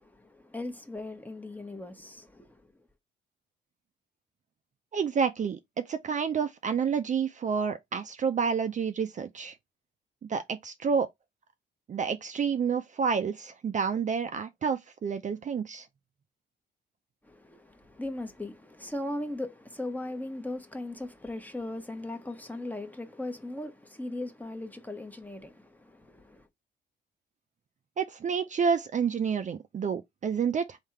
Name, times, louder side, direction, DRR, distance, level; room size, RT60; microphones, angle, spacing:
voice 1, 0.0-2.7 17.2-26.5, left 1 dB, 10° left, 0.9 m, -38 dB
voice 2, 4.9-9.6 10.2-11.1 11.9-15.9 28.0-30.8, right 6 dB, 40° right, 0.5 m, -29 dB
3.5 x 2.8 x 4.4 m
cardioid pair, 90°, 20 cm